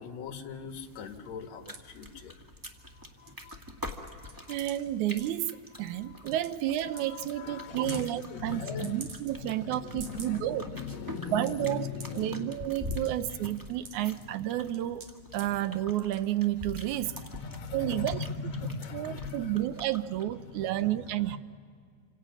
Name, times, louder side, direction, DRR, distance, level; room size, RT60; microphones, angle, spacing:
voice 1, 0.0-2.4 2.9-4.6 5.8-6.3 6.9-8.0 8.3-12.5 13.2-13.4 17.0-19.8 20.6-21.4, left 5 dB, 60° left, 2.7 m, -40 dB
sound 1, 0.7-20.2, left 1 dB, 10° right, 1.1 m, -45 dB
sound 2, 1.7-1.8 2.6-2.8 3.0-3.6 3.9-4.8 5.2-5.3 5.9-6.0 6.3-6.5 6.8-7.0 7.3-7.4 7.8-8.1 8.8-9.5 9.9-10.4 10.8-10.9 11.2-11.5 12.0-12.2 12.9-13.1 13.5-14.2 14.7-15.4 16.1-16.3 16.8-16.9 17.2-17.4 17.7-17.8, right 5 dB, 55° right, 3.2 m, -46 dB
voice 2, 4.5-10.7 11.3-11.9 12.1-15.1 15.3-17.1 17.7-18.2 18.9-21.4, right 13 dB, 75° right, 2.0 m, -31 dB
28.0 x 27.0 x 6.1 m
omnidirectional pair, 3.7 m